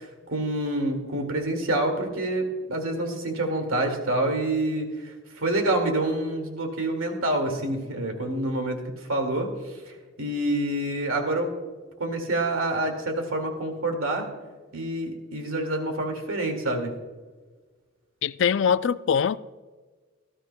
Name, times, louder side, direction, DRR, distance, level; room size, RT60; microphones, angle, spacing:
voice 1, 0.0-11.5 12.0-14.3 14.7-16.9, right 1 dB, 90° right, 2.1 m, -27 dB
voice 2, 18.2-19.4, left 7 dB, 60° left, 0.3 m, -22 dB
19.0 x 12.5 x 2.2 m
head